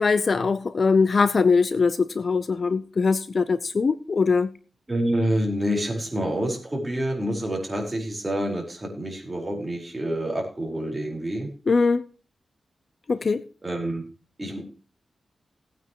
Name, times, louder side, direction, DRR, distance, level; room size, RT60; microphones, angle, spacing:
voice 1, 0.0-4.5 11.7-12.0 13.1-13.4, left 4 dB, 50° left, 0.6 m, -21 dB
voice 2, 4.9-11.5 13.6-14.0 14.4-14.6, right 1 dB, 15° right, 4.6 m, -27 dB
17.5 x 9.2 x 3.0 m
wide cardioid pair, 120°, 0 cm